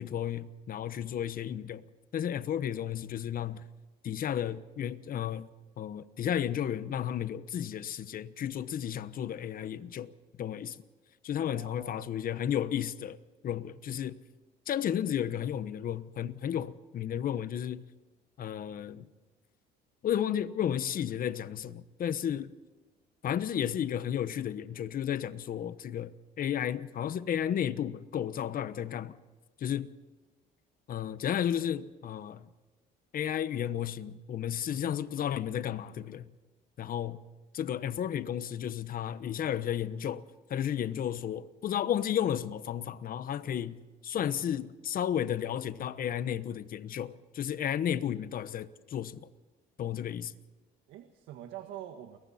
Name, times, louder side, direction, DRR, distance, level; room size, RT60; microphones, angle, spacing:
voice 1, 0.0-1.8 2.1-3.7 4.0-5.5 5.8-10.1 10.4-10.8 11.2-13.2 13.4-14.2 14.7-17.8 18.4-19.1 20.0-22.5 23.2-29.2 29.6-29.9 30.9-32.5 33.1-36.3 36.8-37.2 37.5-40.2 40.5-49.3 49.8-50.3, left 9 dB, 50° left, 1.1 m, -33 dB
voice 2, 11.4-12.1 50.9-52.2, right 11 dB, 85° right, 1.6 m, -45 dB
30.0 x 22.0 x 4.3 m
cardioid pair, 110°, 19 cm